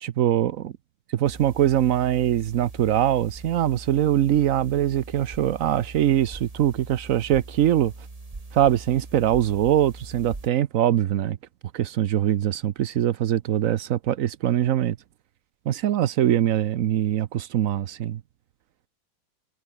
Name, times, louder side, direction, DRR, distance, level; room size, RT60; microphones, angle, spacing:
voice 1, 0.0-0.7 1.2-7.9 8.5-11.4 11.7-15.0 15.7-18.2, right 11 dB, 70° right, 0.7 m, -22 dB
sound 1, 1.2-10.5, right 3 dB, 20° right, 1.6 m, -41 dB
omnidirectional pair, 2.2 m